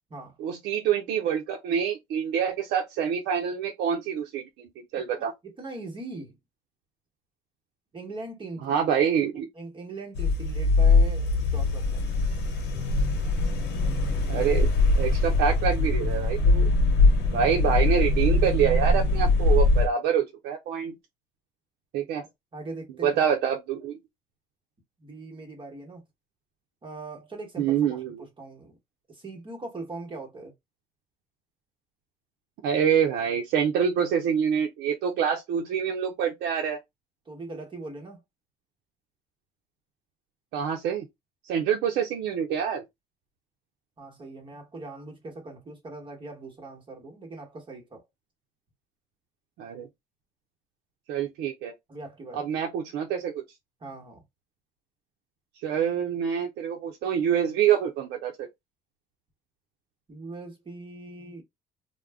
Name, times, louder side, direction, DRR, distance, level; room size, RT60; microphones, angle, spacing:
voice 1, 0.4-4.7 4.9-5.3 8.6-9.5 14.3-14.7 15.0-16.7 17.3-20.9 21.9-22.2 23.0-24.0 27.6-28.2 32.6-36.8 40.5-41.1 41.4-42.8 49.6-49.9 51.1-51.7 52.4-53.4 55.6-58.5, right 8 dB, 80° right, 0.6 m, -26 dB
voice 2, 5.2-6.4 7.9-8.8 9.5-12.0 22.2-23.1 25.0-26.0 26.8-28.8 29.1-30.5 37.2-38.2 44.0-48.0 51.9-52.5 53.8-54.2 60.1-61.4, right 2 dB, 30° right, 1.2 m, -41 dB
sound 1, 10.2-19.9, left 3 dB, 80° left, 0.8 m, -22 dB
2.3 x 2.1 x 3.4 m
cardioid pair, 110°, 17 cm